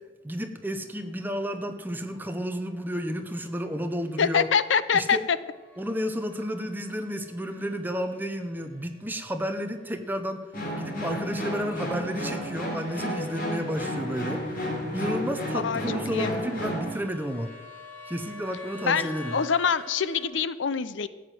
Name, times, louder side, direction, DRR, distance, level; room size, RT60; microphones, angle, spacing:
voice 1, 0.2-4.5 4.9-5.2 5.8-10.4 10.8-14.4 14.9-17.5 18.1-19.4, equal, 10° right, 6 dB, 0.9 m, -31 dB
sound 1, 0.6-20.2, left 1 dB, 10° left, 3.1 m, -49 dB
voice 2, 4.2-5.4 15.5-15.8 16.1-16.3 18.8-21.1, left 6 dB, 70° left, 15 dB, 0.6 m, -25 dB
sound 2, 10.5-16.9, equal, 45° left, 3.4 m, -32 dB
14.0 x 8.3 x 7.7 m, 1.2 s
head